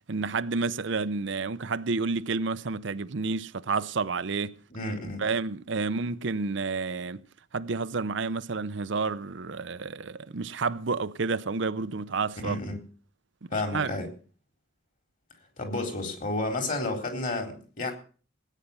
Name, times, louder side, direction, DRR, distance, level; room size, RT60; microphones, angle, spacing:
voice 1, 0.1-4.6 5.2-7.2 7.5-12.6 13.7-13.9, right 4 dB, 65° right, 0.7 m, -30 dB
voice 2, 4.7-5.2 12.4-12.8 13.5-14.1 15.6-17.9, left 2 dB, 40° left, 4.0 m, -31 dB
18.5 x 9.3 x 7.0 m
head